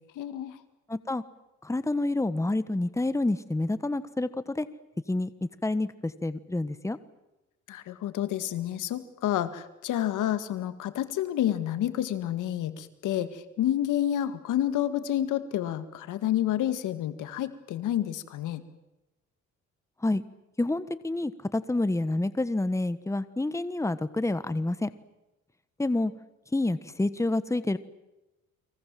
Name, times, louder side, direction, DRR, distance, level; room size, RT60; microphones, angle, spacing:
voice 1, 0.2-0.6 7.7-18.6, left 11 dB, 85° left, 11 dB, 2.0 m, -29 dB
voice 2, 0.9-1.2 1.6-4.7 5.1-5.3 5.6-7.0 20.0-20.2 20.6-24.9 25.8-26.1 26.5-27.8, left 2 dB, 10° left, 13 dB, 1.3 m, -28 dB
30.0 x 23.0 x 7.7 m, 0.98 s
cardioid pair, 90°, 30 cm